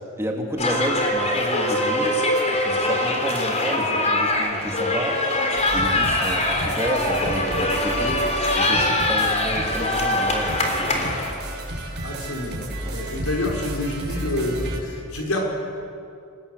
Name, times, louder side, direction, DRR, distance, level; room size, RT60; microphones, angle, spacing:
voice 1, 0.2-2.2 2.6-5.2 5.7-8.2 8.6-11.3 12.8-13.0, equal, 10° right, 1 dB, 2.8 m, -30 dB
sound 1, 0.6-11.3, left 1 dB, 30° left, 3.6 m, -23 dB
sound 2, 5.6-14.8, right 1 dB, 55° right, 7.4 m, -32 dB
voice 2, 12.0-15.4, left 2 dB, 75° left, 0 dB, 5.2 m, -28 dB
27.5 x 19.5 x 8.3 m, 2.4 s
head